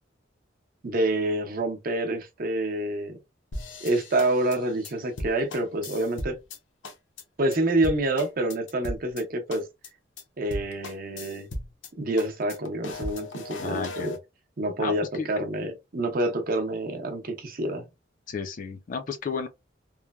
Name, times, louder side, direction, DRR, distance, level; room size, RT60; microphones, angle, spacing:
voice 1, 0.8-3.2 3.8-6.4 7.4-9.7 10.4-11.5 12.0-14.1 14.6-17.9, right 1 dB, 50° right, 0.6 m, -27 dB
sound 1, 3.5-6.6 6.8-7.2 7.5-7.6 7.8-9.2 9.5-9.9 10.2-10.3 10.5-11.9 12.2-14.2, left 1 dB, 75° left, 0.7 m, -37 dB
voice 2, 13.6-14.2 14.8-15.3 18.3-19.5, left 5 dB, 45° left, 0.4 m, -32 dB
3.1 x 2.1 x 2.2 m
head